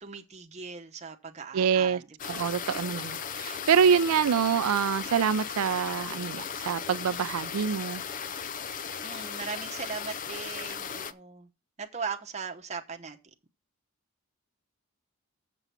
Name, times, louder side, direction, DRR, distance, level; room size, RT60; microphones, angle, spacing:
voice 1, 0.0-2.3 9.0-11.5 11.8-13.2, right 5 dB, 30° right, 0.9 m, -39 dB
voice 2, 1.5-2.0 2.3-8.0, right 7 dB, 85° right, 0.4 m, -26 dB
sound 1, 2.2-11.1, left 7 dB, 35° left, 0.4 m, -37 dB
7.1 x 6.8 x 5.8 m
head